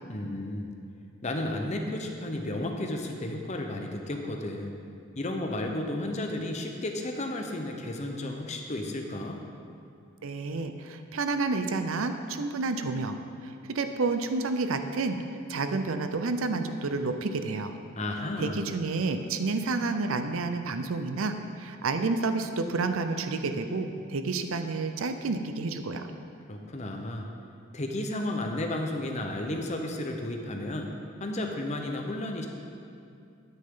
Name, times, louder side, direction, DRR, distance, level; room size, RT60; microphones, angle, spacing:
voice 1, 0.1-0.8 1.2-4.8 5.2-9.4 18.0-18.6 26.5-27.3 27.7-32.5, left 1 dB, 35° left, 3 dB, 0.8 m, -33 dB
voice 2, 10.2-15.2 15.5-17.7 18.4-26.1, right 3 dB, 80° right, 8 dB, 0.6 m, -30 dB
12.5 x 9.9 x 3.8 m, 2.5 s
head